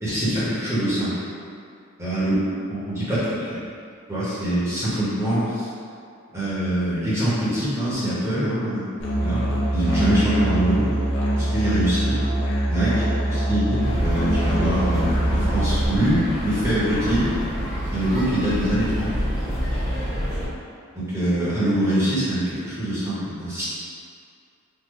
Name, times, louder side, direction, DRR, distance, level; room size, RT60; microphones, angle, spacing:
voice 1, 0.0-1.2 2.0-2.3 2.7-3.6 4.1-5.7 6.3-8.9 9.2-9.5 9.7-10.9 11.4-12.2 12.7-17.3 17.9-19.1 20.9-23.7, right 1 dB, 15° right, -11 dB, 0.9 m, -24 dB
Musical instrument, 9.0-15.9, right 1 dB, 60° left, 0.6 m, -23 dB
sound 1, 13.8-20.5, equal, 20° left, 1.0 m, -27 dB
3.7 x 2.3 x 3.1 m, 2.4 s
head